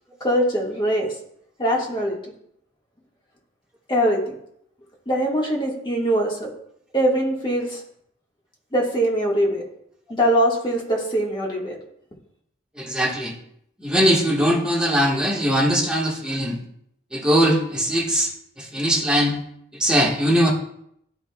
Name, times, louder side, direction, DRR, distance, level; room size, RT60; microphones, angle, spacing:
voice 1, 0.2-1.1 1.6-2.2 3.9-4.3 5.1-6.5 6.9-7.8 8.7-9.6 10.1-11.8, right 1 dB, 25° left, -2 dB, 1.6 m, -22 dB
voice 2, 12.7-13.3 13.8-16.6 17.1-18.3 18.6-19.4 19.7-20.5, equal, 5° right, -3 dB, 1.4 m, -20 dB
12.5 x 4.9 x 2.3 m, 0.71 s
head